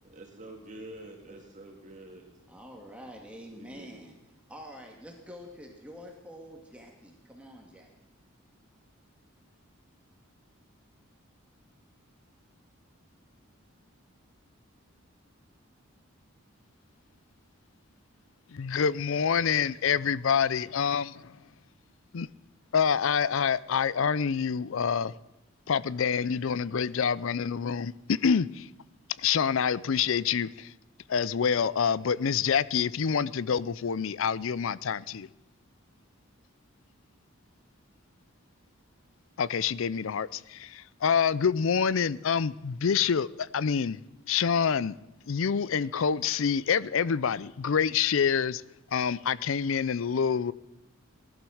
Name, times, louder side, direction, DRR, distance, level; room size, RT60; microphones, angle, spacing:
voice 1, 0.0-2.3 3.5-4.1, right 1 dB, 35° right, 2.0 m, -47 dB
voice 2, 2.5-4.1 4.5-7.9, equal, 5° right, 2.0 m, -46 dB
voice 3, 18.5-21.4 22.1-22.3 22.7-25.1 25.7-28.7 29.2-30.7 31.1-35.3 39.4-44.0 44.3-45.0 45.3-48.6 48.9-50.5, left 6 dB, 70° left, 0.5 m, -27 dB
17.5 x 11.5 x 6.4 m
head